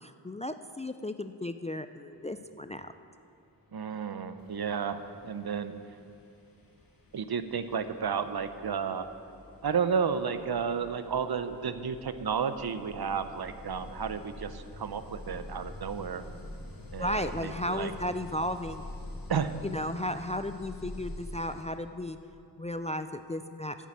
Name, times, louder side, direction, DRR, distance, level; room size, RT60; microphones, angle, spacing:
voice 1, 0.0-2.9 17.0-18.9 19.6-22.2 22.6-23.8, left 1 dB, 15° left, 10 dB, 0.3 m, -34 dB
voice 2, 3.7-5.7 7.1-9.1 9.6-16.3 16.9-17.9 19.3-19.5, right 6 dB, 60° right, 11 dB, 0.7 m, -32 dB
sound 1, 3.8-4.0 4.4-21.6, left 1 dB, 55° left, 1.9 m, -46 dB
9.3 x 7.3 x 8.4 m, 2.7 s
wide cardioid pair, 55°, 42 cm